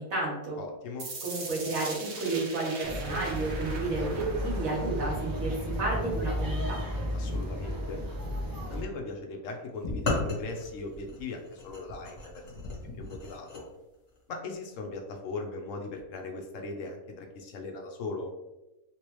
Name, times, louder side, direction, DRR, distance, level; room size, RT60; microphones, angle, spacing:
voice 1, 0.0-0.6 1.2-6.8, right 3 dB, 80° right, -4 dB, 1.7 m, -31 dB
voice 2, 0.6-1.1 7.1-8.0 8.7-12.4 12.7-13.7 14.3-18.3, left 3 dB, 70° left, 2 dB, 1.0 m, -39 dB
sound 1, 1.0-7.0, right 3 dB, 60° right, 1.1 m, -42 dB
sound 2, 2.8-8.8, equal, 35° right, 0.3 m, -33 dB
sound 3, 9.8-13.6, left 2 dB, 50° left, 1.1 m, -35 dB
3.3 x 3.1 x 3.0 m, 1.0 s
omnidirectional pair, 1.4 m